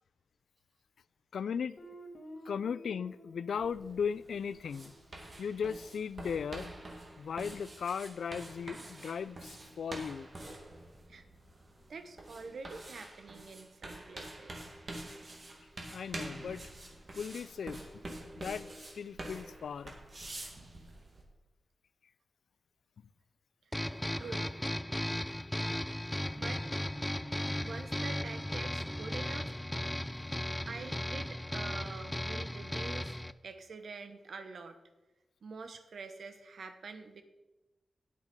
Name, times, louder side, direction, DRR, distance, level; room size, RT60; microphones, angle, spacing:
voice 1, 1.3-1.8 2.5-5.0 5.4-6.7 7.2-10.3 15.8-16.6 17.2-17.9 18.4-18.7 18.9-19.9 20.4-20.5, left 6 dB, 90° left, 18 dB, 0.3 m, -37 dB
Guitar, 1.8-6.4, left 1 dB, 50° left, 1.7 m, -54 dB
sound 1, 3.6-21.2, right 1 dB, 45° right, 2.3 m, -47 dB
voice 2, 11.9-14.5 24.1-24.5 26.4-26.6 27.6-29.5 30.7-34.8 35.4-37.2, right 4 dB, 75° right, 8 dB, 1.1 m, -46 dB
sound 2, 23.7-33.3, left 1 dB, 10° left, 0.4 m, -36 dB
9.7 x 8.0 x 5.3 m, 1.1 s
wide cardioid pair, 80°, 0 cm